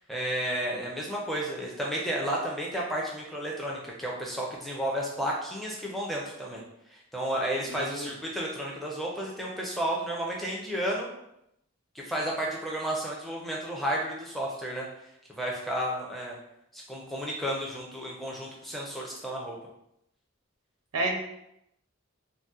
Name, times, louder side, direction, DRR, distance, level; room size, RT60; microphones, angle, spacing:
voice 1, 0.1-6.6 6.9-11.1 11.9-14.9 15.3-16.4 16.7-19.6, right 1 dB, ahead, -3 dB, 0.4 m, -32 dB
voice 2, 7.7-8.1 20.9-21.1, right 2 dB, 90° right, 1 dB, 0.6 m, -30 dB
2.7 x 2.1 x 3.5 m, 0.80 s
head